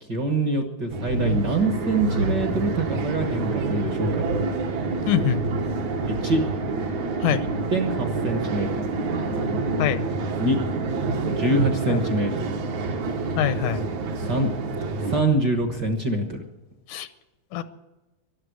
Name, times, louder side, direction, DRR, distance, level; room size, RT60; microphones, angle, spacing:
voice 1, 0.1-4.2 6.0-6.4 7.7-8.8 10.4-10.6 11.4-12.5 14.3-14.5 15.0-16.4, right 2 dB, 50° right, 4 dB, 1.4 m, -24 dB
sound 1, 0.9-15.2, right 3 dB, 70° right, 2.8 m, -27 dB
voice 2, 5.1-5.4 7.2-7.5 9.8-10.0 11.9-12.1 13.4-13.8 16.9-17.1 17.5-17.6, left 10 dB, 80° left, 12 dB, 2.3 m, -24 dB
13.0 x 12.0 x 9.4 m, 1.1 s
omnidirectional pair, 3.5 m